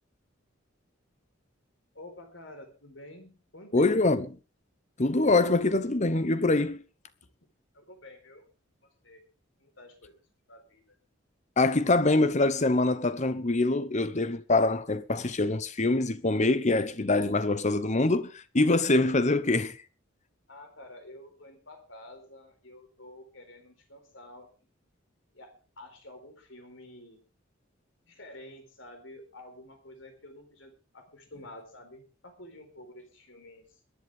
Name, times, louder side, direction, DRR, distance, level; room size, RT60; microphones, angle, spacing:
voice 1, 1.9-4.2 7.7-8.4 9.0-9.2 9.6-10.2 10.5-11.0 20.5-24.5 25.3-27.2 28.0-33.6, left 1 dB, 70° left, 4.4 m, -49 dB
voice 2, 3.7-4.3 5.0-6.8 11.6-19.8, left 2 dB, 35° left, 1.0 m, -24 dB
22.0 x 10.5 x 3.6 m
head